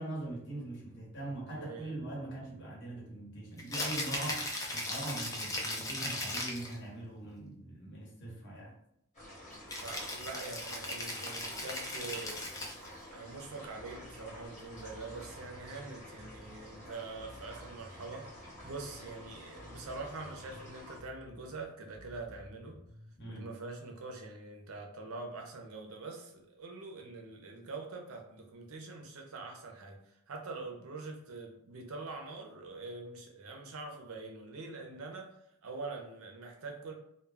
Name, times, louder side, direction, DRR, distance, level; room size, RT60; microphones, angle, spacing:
voice 1, 0.0-4.5 4.7-8.7 23.2-23.5, right 1 dB, 50° left, -4 dB, 1.0 m, -42 dB
voice 2, 1.2-1.9 9.8-12.4 13.1-22.8 23.3-35.3 35.6-36.9, right 3 dB, 75° right, 2 dB, 0.6 m, -44 dB
Rattle (instrument), 3.6-6.8 9.7-12.9, left 1 dB, 15° left, 0.3 m, -37 dB
sound 1, 9.1-21.0, equal, 30° left, 1.2 m, -50 dB
Bass guitar, 13.7-23.2, left 1 dB, 5° right, 0.7 m, -55 dB
2.2 x 2.1 x 3.3 m, 0.75 s
head